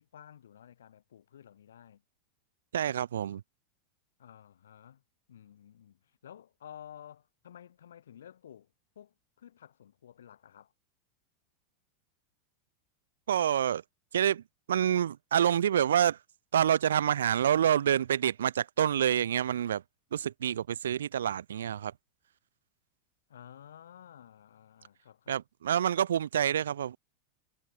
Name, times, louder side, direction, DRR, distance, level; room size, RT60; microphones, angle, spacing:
voice 1, 0.0-2.0 4.2-5.0 5.3-10.7 23.3-25.4, left 9 dB, 85° left, 4.0 m, -53 dB
voice 2, 2.7-3.4 13.3-13.8 14.1-14.4 14.7-16.2 16.5-19.8 20.1-21.9 25.3-27.0, right 9 dB, 85° right, 0.4 m, -27 dB
hypercardioid pair, 105°, 0 cm